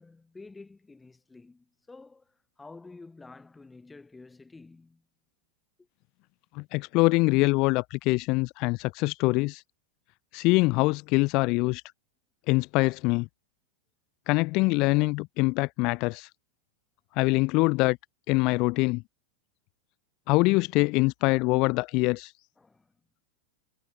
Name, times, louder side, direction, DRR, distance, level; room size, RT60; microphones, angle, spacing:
voice 1, 0.0-5.0 22.6-22.9, left 3 dB, 10° left, 6.7 m, -50 dB
voice 2, 6.5-9.6 10.3-11.8 12.5-13.3 14.3-16.3 17.2-18.0 18.3-19.0 20.3-22.3, left 25 dB, 40° left, 1.0 m, -24 dB
figure-of-eight pair, 90°, 0 cm